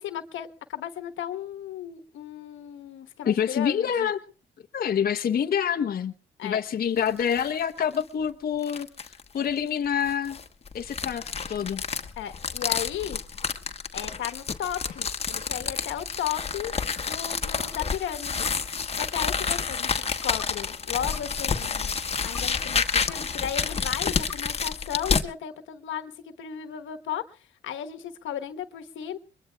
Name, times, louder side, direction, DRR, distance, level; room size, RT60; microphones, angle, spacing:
voice 1, 0.0-4.1 6.4-6.6 12.2-13.2 13.9-16.7 17.0-18.5 19.0-22.0 22.2-29.2, left 10 dB, 75° left, 8 dB, 1.2 m, -35 dB
voice 2, 3.3-4.2 4.7-6.1 6.4-8.9 9.3-10.4 10.7-11.8, left 8 dB, 50° left, 5 dB, 0.9 m, -26 dB
sound 1, 7.0-7.5 7.9-8.0 8.6-9.2 10.0-25.3, left 5 dB, 30° left, 1.2 m, -29 dB
sound 2, 18.4-18.5 19.2-19.7 20.4-20.5 21.1-21.6 22.3-22.4 23.1-23.6 24.3-24.4 25.0-25.5, left 8 dB, 15° left, 2.2 m, -42 dB
22.5 x 21.5 x 2.3 m, 0.37 s
cardioid pair, 90°, 20 cm